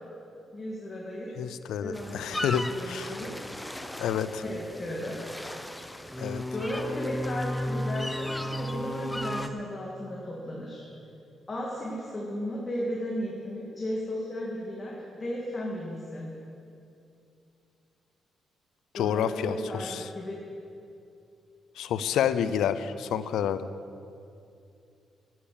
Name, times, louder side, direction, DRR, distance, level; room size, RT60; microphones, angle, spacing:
voice 1, 0.5-1.3 1.8-2.4 2.7-3.4 4.4-5.2 6.5-10.8 11.5-16.3 18.9-20.4, left 1 dB, 35° left, -4 dB, 2.4 m, -35 dB
voice 2, 1.4-3.1 4.0-4.4 6.2-6.4 18.9-20.1 21.8-23.7, left 8 dB, 80° left, 13 dB, 0.5 m, -29 dB
sound 1, 1.9-9.5, left 1 dB, 10° left, 0.7 m, -35 dB
10.0 x 8.7 x 8.6 m, 2.6 s
cardioid pair, 70°, 0 cm